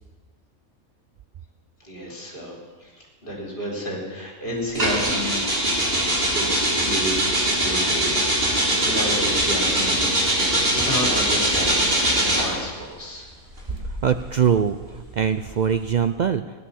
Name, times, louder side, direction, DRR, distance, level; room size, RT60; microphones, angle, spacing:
voice 1, 1.8-2.9 3.2-5.9 6.3-7.3 7.6-10.0 10.7-11.8 12.2-13.3, equal, 40° left, -1 dB, 4.1 m, -31 dB
sound 1, 4.7-12.6 13.5-16.0, right 1 dB, 45° right, 3.6 m, -22 dB
voice 2, 14.0-16.4, right 7 dB, 80° right, 9 dB, 0.4 m, -22 dB
16.0 x 11.5 x 7.1 m, 1.4 s
omnidirectional pair, 1.4 m